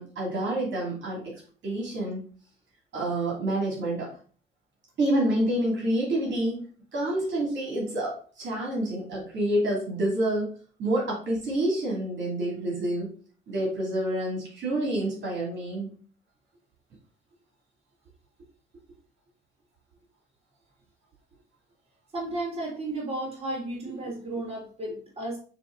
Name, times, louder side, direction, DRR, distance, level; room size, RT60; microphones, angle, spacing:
voice 1, 0.0-1.3 1.6-2.2 2.9-4.2 5.0-6.7 6.9-10.5 10.8-13.1 13.5-15.9, right 1 dB, 65° right, -4 dB, 2.9 m, -28 dB
voice 2, 22.1-25.4, right 2 dB, 30° right, -3 dB, 3.3 m, -33 dB
6.8 x 3.5 x 3.9 m, 0.41 s
cardioid pair, 90°, 20 cm